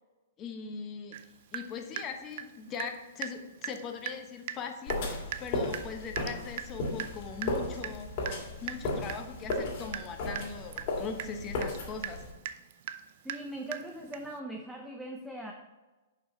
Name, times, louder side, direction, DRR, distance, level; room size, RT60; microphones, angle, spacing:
voice 1, 0.4-8.3 8.6-12.2, left 5 dB, 25° left, 5 dB, 1.0 m, -40 dB
Water tap faucet / Drip, 1.1-1.3 1.5-3.0 3.2-3.4 3.6-3.8 4.1-4.2 4.5-4.6 4.9-14.4, right 11 dB, 55° right, 0.5 m, -40 dB
sound 1, 4.9-12.3, left 2 dB, 45° left, 2.4 m, -35 dB
voice 2, 13.2-15.5, right 1 dB, 5° right, 1 dB, 0.7 m, -40 dB
6.4 x 5.7 x 4.0 m, 1.2 s
hypercardioid pair, 125°, 0 cm